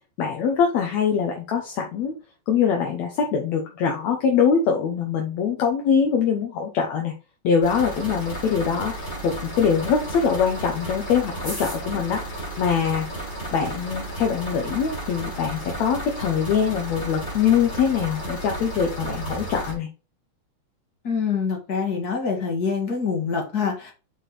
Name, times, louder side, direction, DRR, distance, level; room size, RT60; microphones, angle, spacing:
voice 1, 0.2-2.2 2.5-7.1 7.4-12.3 12.6-13.2 13.5-19.9, left 7 dB, 70° left, 2 dB, 2.3 m, -23 dB
sound 1, 7.6-19.7, right 1 dB, 15° left, 2.6 m, -33 dB
voice 2, 21.0-23.9, left 5 dB, 35° left, 2 dB, 2.2 m, -25 dB
6.7 x 4.9 x 4.2 m, 0.32 s
omnidirectional pair, 3.4 m